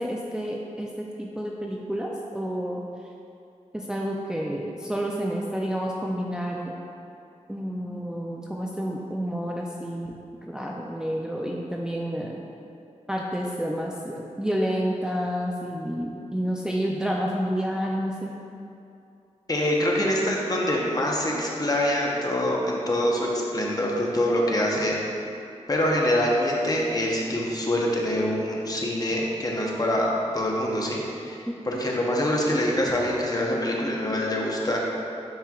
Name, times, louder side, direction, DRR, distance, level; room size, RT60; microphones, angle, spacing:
voice 1, 0.0-2.8 3.7-6.8 7.5-10.1 10.4-12.4 13.1-18.3 31.5-31.8, equal, 5° right, -2 dB, 0.4 m, -29 dB
voice 2, 19.5-25.0 25.7-34.9, left 1 dB, 30° left, -2 dB, 0.9 m, -25 dB
9.4 x 4.4 x 2.4 m, 2.6 s
wide cardioid pair, 90°, 12 cm